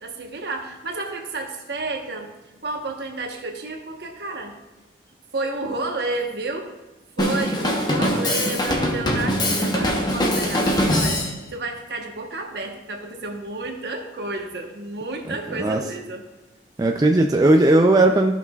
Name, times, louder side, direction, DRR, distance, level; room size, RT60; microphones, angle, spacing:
voice 1, 0.0-2.3 2.6-4.5 5.3-6.7 7.2-16.2, right 2 dB, 65° right, 2 dB, 1.1 m, -31 dB
Drum kit, 7.2-11.4, left 1 dB, 25° left, 0.9 m, -22 dB
voice 2, 15.3-15.8 16.8-18.3, right 2 dB, 20° right, 2 dB, 0.4 m, -17 dB
14.0 x 5.9 x 2.3 m, 1.1 s
head